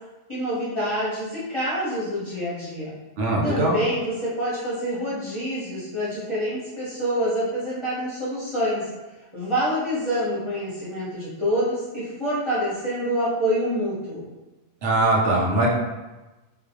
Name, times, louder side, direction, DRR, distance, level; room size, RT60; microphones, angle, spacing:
voice 1, 0.3-2.9 3.4-8.9 9.3-14.2, equal, 30° left, -10 dB, 0.7 m, -26 dB
voice 2, 3.2-3.8 14.8-15.7, right 2 dB, 75° right, -3 dB, 0.9 m, -21 dB
2.2 x 2.0 x 2.7 m, 1.1 s
omnidirectional pair, 1.3 m